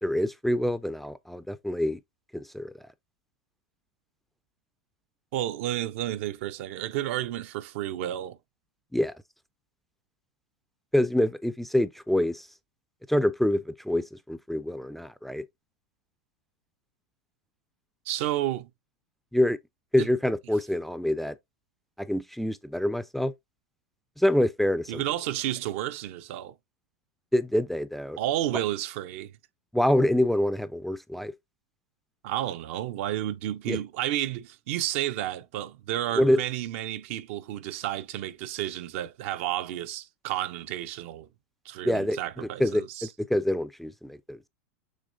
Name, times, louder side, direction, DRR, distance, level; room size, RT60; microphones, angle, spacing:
voice 1, 0.0-2.0 2.3-2.7 8.9-9.1 10.9-12.5 13.1-15.4 19.3-19.6 19.9-21.4 22.0-23.3 24.2-25.0 27.3-28.2 29.7-31.3 33.7-33.8 36.2-36.4 41.8-44.4, left 1 dB, ahead, 0.3 m, -26 dB
voice 2, 5.3-8.4 18.1-18.7 20.0-20.1 24.9-26.5 28.2-29.3 32.2-41.3 41.6-43.1, right 13 dB, 65° right, 0.5 m, -31 dB
6.5 x 3.1 x 2.5 m
hypercardioid pair, 110°, 8 cm